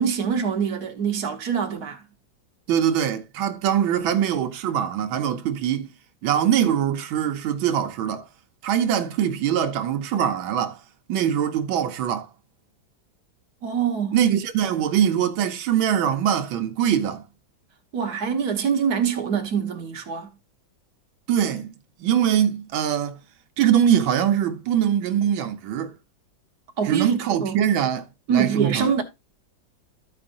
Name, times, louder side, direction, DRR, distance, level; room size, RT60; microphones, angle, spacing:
voice 1, 0.0-2.0 13.6-14.2 17.9-20.3 26.8-27.6 28.3-29.0, right 7 dB, 55° right, 1.4 m, -24 dB
voice 2, 2.7-5.9 6.2-8.3 8.6-10.8 11.1-12.3 14.1-17.2 21.3-21.7 22.0-23.2 23.6-25.9 26.8-28.9, right 9 dB, 85° right, 1.6 m, -22 dB
14.0 x 4.9 x 2.5 m
omnidirectional pair, 2.1 m